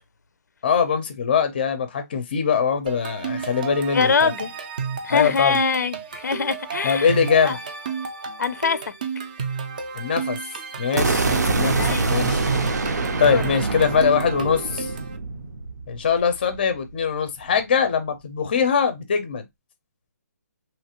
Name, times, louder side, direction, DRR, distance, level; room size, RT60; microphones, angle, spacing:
voice 1, 0.6-4.3 5.1-5.6 6.8-7.6 9.9-10.4 10.8-12.5 13.2-14.9 15.9-19.4, left 6 dB, 35° left, 0.5 m, -22 dB
sound 1, 2.9-15.2, right 6 dB, 30° right, 0.3 m, -32 dB
voice 2, 3.9-4.5 5.0-7.1 7.4-7.6 8.4-8.9 11.8-12.1 13.2-13.4, left 5 dB, 85° left, 0.4 m, -23 dB
sound 2, 11.0-17.0, right 3 dB, 85° right, 0.6 m, -25 dB
2.9 x 2.4 x 2.8 m
hypercardioid pair, 170°, 9 cm